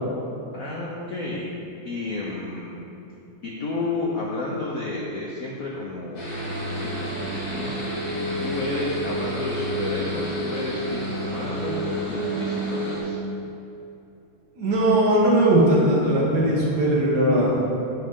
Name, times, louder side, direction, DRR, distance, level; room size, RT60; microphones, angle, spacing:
voice 1, 0.5-1.5 1.8-2.8 3.4-6.2 6.7-13.2, left 2 dB, 75° left, -4 dB, 0.7 m, -31 dB
sound 1, 6.1-13.0, right 1 dB, 55° left, 2.3 m, -29 dB
voice 2, 14.6-17.5, right 1 dB, 55° right, -5 dB, 1.6 m, -19 dB
7.7 x 4.8 x 3.6 m, 2.8 s
omnidirectional pair, 2.3 m